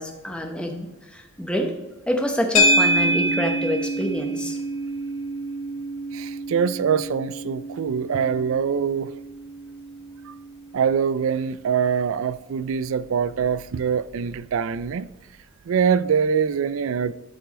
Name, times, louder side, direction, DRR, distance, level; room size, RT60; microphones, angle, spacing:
voice 1, 0.0-1.7 2.1-4.6, equal, 5° left, 0.9 m, -27 dB
sound 1, 2.6-11.0, equal, 75° left, 1.1 m, -26 dB
voice 2, 6.1-9.1 10.3-10.4 10.7-15.1 15.7-17.1, right 7 dB, 65° right, 0.3 m, -24 dB
12.5 x 4.6 x 4.1 m
head